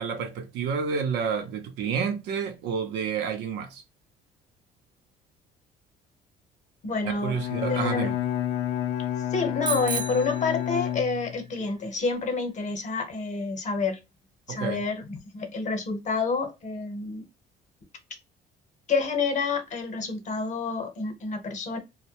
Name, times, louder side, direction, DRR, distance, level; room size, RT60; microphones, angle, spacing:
voice 1, 0.0-3.8 7.0-8.2 14.5-14.8, right 6 dB, 85° right, 0.6 m, -29 dB
voice 2, 6.8-7.4 7.7-8.1 9.3-14.0 14.5-17.2 18.9-21.8, left 4 dB, 45° left, 0.8 m, -29 dB
Bowed string instrument, 7.3-11.5, left 11 dB, 80° left, 0.4 m, -30 dB
Bicycle bell, 9.6-11.2, right 6 dB, 25° right, 0.4 m, -33 dB
2.1 x 2.1 x 2.8 m
cardioid pair, 110°, 17 cm